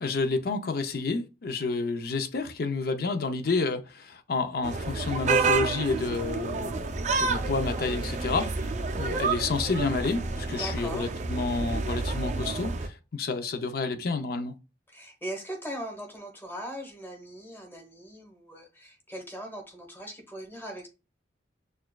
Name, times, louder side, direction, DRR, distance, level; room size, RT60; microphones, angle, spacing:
voice 1, 0.0-6.9 7.2-14.6, left 3 dB, 55° left, 0.5 m, -30 dB
sound 1, 4.6-12.9, right 4 dB, 40° right, 0.4 m, -29 dB
voice 2, 10.5-11.1 14.9-20.9, right 1 dB, 10° left, 1.0 m, -40 dB
6.5 x 2.3 x 2.2 m
head